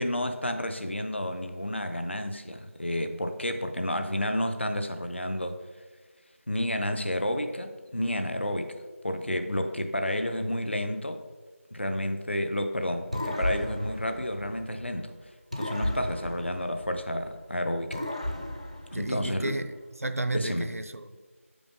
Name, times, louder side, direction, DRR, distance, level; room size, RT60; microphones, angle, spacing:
voice 1, 0.0-5.6 6.5-8.8 9.0-11.2 11.7-15.1 15.5-18.0 18.9-19.6 20.3-20.7, left 1 dB, 55° left, 7 dB, 0.7 m, -30 dB
sound 1, 13.1-15.0 15.5-17.4 17.9-19.6, left 1 dB, 30° right, 0.4 m, -35 dB
voice 2, 18.9-19.7 20.0-21.3, right 2 dB, 80° right, 9 dB, 0.6 m, -32 dB
7.8 x 5.1 x 3.7 m, 1.4 s
figure-of-eight pair, 180°, 8 cm